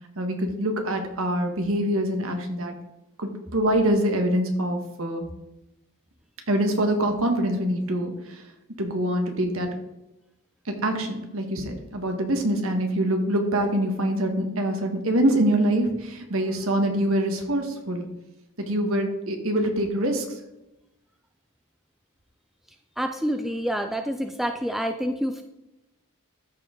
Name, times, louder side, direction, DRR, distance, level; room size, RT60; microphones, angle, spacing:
voice 1, 0.2-2.7 3.2-5.3 6.5-8.4 8.8-9.7 10.6-18.1 18.7-20.4, right 1 dB, 65° right, 4 dB, 1.5 m, -25 dB
voice 2, 23.0-25.4, equal, ahead, 5 dB, 0.3 m, -27 dB
13.5 x 4.6 x 3.7 m, 0.95 s
head